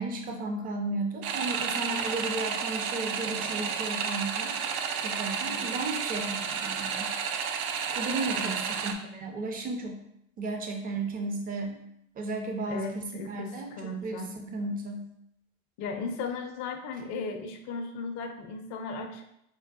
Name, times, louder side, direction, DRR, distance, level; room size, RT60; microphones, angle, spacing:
voice 1, 0.0-4.5 5.0-7.1 7.9-10.0 10.4-11.8 12.2-13.7 14.0-15.1, right 2 dB, 20° right, 3 dB, 0.5 m, -34 dB
sound 1, 1.2-8.9, right 6 dB, 75° right, 0.5 m, -31 dB
voice 2, 8.3-8.6 12.7-14.4 15.8-19.2, left 3 dB, 40° left, 4 dB, 0.5 m, -36 dB
4.5 x 2.2 x 2.4 m, 0.79 s
hypercardioid pair, 90°, 43 cm